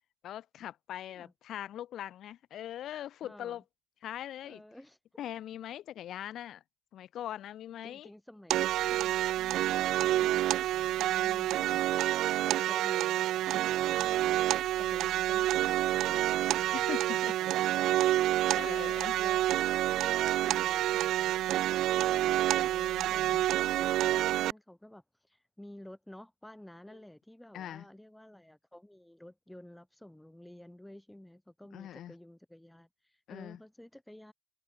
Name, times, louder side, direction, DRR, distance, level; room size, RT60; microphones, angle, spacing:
voice 1, 0.2-3.6 4.0-4.6 5.2-6.6 6.9-8.1 11.5-11.8 16.7-17.3 18.5-19.1 22.9-23.5 27.5-27.8 31.7-32.1 33.3-33.6, left 11 dB, 75° left, 2.2 m, -41 dB
voice 2, 3.2-3.6 4.4-5.0 7.8-8.5 8.8-11.9 12.4-16.8 17.1-18.9 19.2-19.5 19.7-34.3, left 1 dB, 5° left, 7.2 m, -52 dB
sound 1, 8.5-24.5, right 14 dB, 85° right, 0.3 m, -28 dB
cardioid pair, 90°, 0 cm